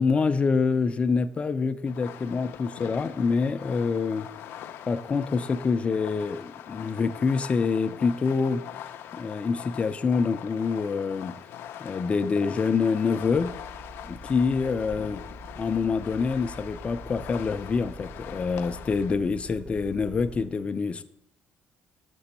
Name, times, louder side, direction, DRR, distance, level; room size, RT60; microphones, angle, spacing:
voice 1, 0.0-4.3 4.9-8.6 9.1-11.3 11.8-13.5 14.0-15.2 15.6-21.0, left 5 dB, 30° left, 10 dB, 0.5 m, -26 dB
Fireworks, 1.9-19.1, left 10 dB, 90° left, 0.4 m, -42 dB
sound 1, 13.2-20.5, right 1 dB, 35° right, 1.2 m, -45 dB
6.9 x 6.1 x 4.2 m, 0.84 s
cardioid pair, 120°, 4 cm